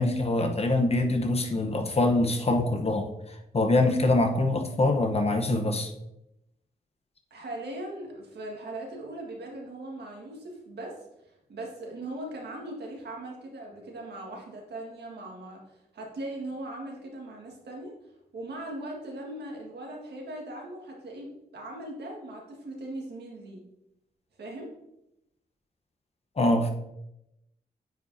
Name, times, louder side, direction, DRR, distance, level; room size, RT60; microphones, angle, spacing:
voice 1, 0.0-3.1 3.5-5.9 26.4-26.7, left 2 dB, 40° left, 5 dB, 0.9 m, -24 dB
voice 2, 7.3-17.9 18.3-23.6 24.4-24.7, right 1 dB, 85° right, -1 dB, 1.7 m, -39 dB
9.0 x 5.0 x 2.7 m, 0.85 s
wide cardioid pair, 95°, 17 cm